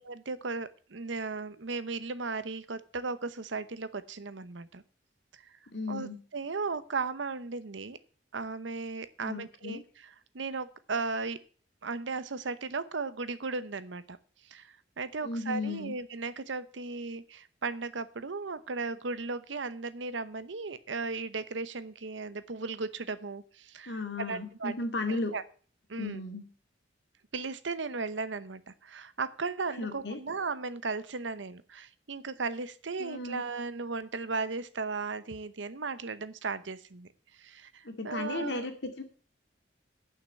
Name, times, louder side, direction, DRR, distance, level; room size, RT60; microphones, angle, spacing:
voice 1, 0.0-4.8 5.9-8.0 8.3-11.4 11.8-14.2 14.5-24.7 25.1-25.4 25.9-26.2 27.3-37.1 37.4-38.6, right 4 dB, 85° right, 14 dB, 0.9 m, -36 dB
voice 2, 5.7-6.2 9.2-9.8 15.2-15.9 23.9-25.3 26.0-26.4 29.8-30.2 33.0-33.4 37.8-38.7 39.0-39.1, left 2 dB, 70° left, 4 dB, 2.2 m, -35 dB
10.5 x 5.8 x 7.6 m, 0.42 s
head